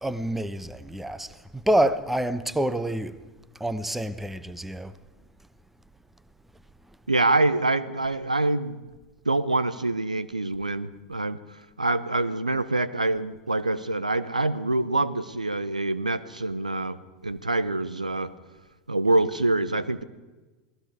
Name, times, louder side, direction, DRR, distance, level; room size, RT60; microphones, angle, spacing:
voice 1, 0.0-1.3 1.5-3.1 3.6-4.9, right 1 dB, 5° right, 1.1 m, -27 dB
voice 2, 7.1-8.8 9.2-11.4 11.8-18.3 18.9-20.0, right 2 dB, 85° right, 1.0 m, -25 dB
28.0 x 19.0 x 4.9 m
figure-of-eight pair, 85°, 4 cm